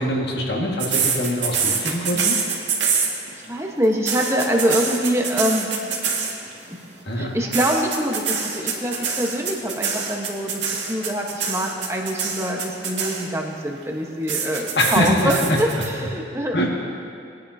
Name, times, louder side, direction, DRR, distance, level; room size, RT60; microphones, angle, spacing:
voice 1, 0.0-2.5 7.0-7.4 14.7-15.8 16.5-16.7, left 1 dB, 65° left, -1 dB, 1.8 m, -23 dB
sound 1, 0.8-3.4 3.8-6.5 7.5-13.5 14.3-15.9, right 6 dB, 85° right, 1.9 m, -25 dB
voice 2, 3.5-5.7 6.7-6.8 7.2-16.6, equal, 15° right, 0 dB, 1.1 m, -24 dB
21.0 x 10.5 x 2.8 m, 2.4 s
head